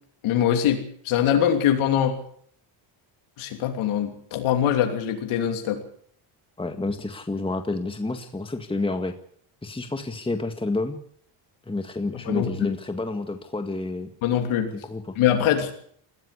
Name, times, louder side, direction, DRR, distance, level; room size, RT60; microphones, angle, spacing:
voice 1, 0.2-2.2 3.4-5.8 12.2-12.7 14.2-14.7 15.2-15.7, left 10 dB, 75° left, 4 dB, 3.1 m, -23 dB
voice 2, 6.6-9.1 9.6-11.0 11.7-14.1 14.7-15.2, left 2 dB, 10° left, 6 dB, 1.9 m, -29 dB
20.5 x 15.5 x 8.3 m, 0.63 s
cardioid pair, 100°, 49 cm